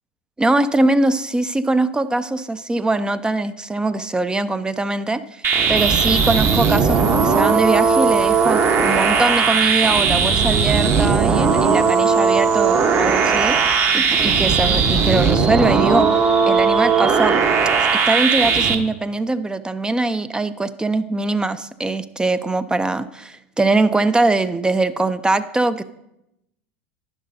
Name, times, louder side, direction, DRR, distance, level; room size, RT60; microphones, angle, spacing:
voice 1, 0.4-5.2 5.7-16.1 16.5-17.4 18.1-25.8, right 2 dB, 10° right, 13 dB, 0.4 m, -22 dB
sound 1, 5.4-18.8, right 5 dB, 35° right, 1.0 m, -17 dB
sound 2, 5.7-17.4, right 3 dB, 85° right, 3.3 m, -31 dB
11.0 x 11.0 x 2.7 m, 0.85 s
figure-of-eight pair, 80°, 7 cm